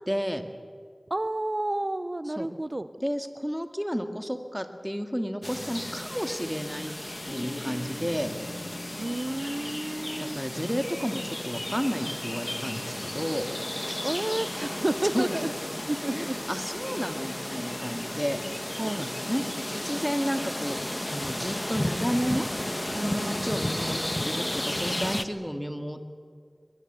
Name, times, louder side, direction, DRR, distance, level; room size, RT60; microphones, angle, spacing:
voice 1, 0.1-0.4 2.4-2.5 3.0-6.9 7.3-8.3 10.2-13.4 15.1-15.5 16.1-18.4 19.0-20.8 21.1-22.5 23.0-26.1, equal, ahead, 7 dB, 2.2 m, -31 dB
voice 2, 1.1-2.9 9.0-10.4 14.0-15.5 15.8-16.4 18.8-19.2 22.9-23.5 23.9-24.0, right 1 dB, 45° right, 12 dB, 0.7 m, -31 dB
sound 1, 5.4-25.2, left 1 dB, 25° left, 1.3 m, -33 dB
Guitar, 7.3-11.8, left 1 dB, 60° left, 2.6 m, -45 dB
22.5 x 21.5 x 8.1 m, 2.1 s
wide cardioid pair, 45°, 0 cm